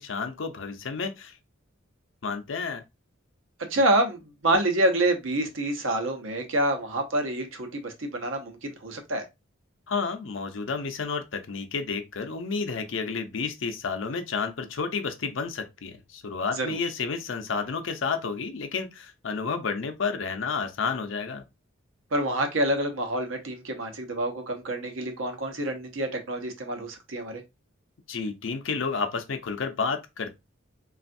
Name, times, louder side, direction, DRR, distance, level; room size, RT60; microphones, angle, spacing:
voice 1, 0.0-1.4 2.2-2.8 9.9-21.4 28.1-30.4, left 5 dB, 70° left, 0.6 m, -31 dB
voice 2, 3.7-9.2 16.6-16.8 22.1-27.4, right 1 dB, 85° right, 0.8 m, -27 dB
3.3 x 2.4 x 2.5 m
head